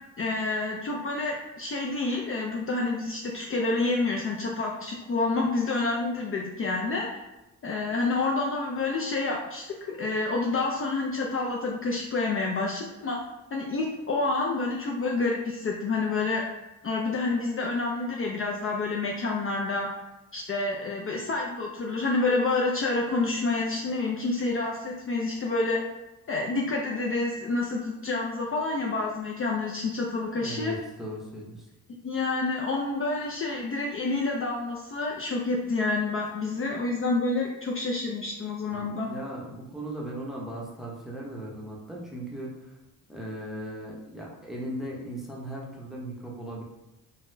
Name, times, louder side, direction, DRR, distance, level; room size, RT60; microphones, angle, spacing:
voice 1, 0.2-7.1 7.6-13.2 13.5-16.4 16.8-19.9 20.3-25.8 26.3-30.7 32.0-39.1, left 3 dB, 35° left, -1 dB, 0.4 m, -28 dB
voice 2, 30.4-31.7 38.7-42.7 43.1-46.6, right 1 dB, ahead, -3 dB, 0.7 m, -38 dB
3.9 x 2.1 x 2.6 m, 1.0 s
cardioid pair, 95°, 37 cm